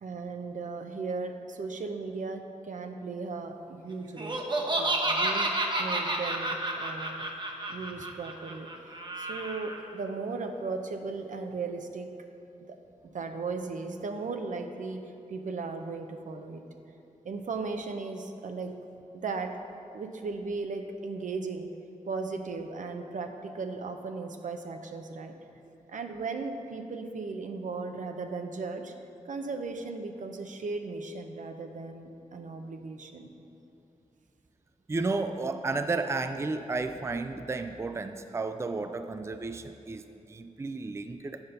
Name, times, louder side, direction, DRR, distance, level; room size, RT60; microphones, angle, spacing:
voice 1, 0.0-5.5 5.8-7.3 7.7-8.7 9.2-12.1 12.7-12.8 13.1-15.0 15.3-16.6 17.2-18.8 19.1-19.6 19.9-21.7 22.0-25.3 25.9-28.9 29.3-33.3, right 4 dB, 70° right, 5 dB, 0.6 m, -36 dB
Laughter, 4.2-9.8, right 2 dB, 35° right, 0.9 m, -30 dB
voice 2, 34.9-41.4, right 3 dB, 20° right, 9 dB, 0.4 m, -32 dB
8.1 x 5.2 x 5.5 m, 2.9 s
cardioid pair, 50°, 14 cm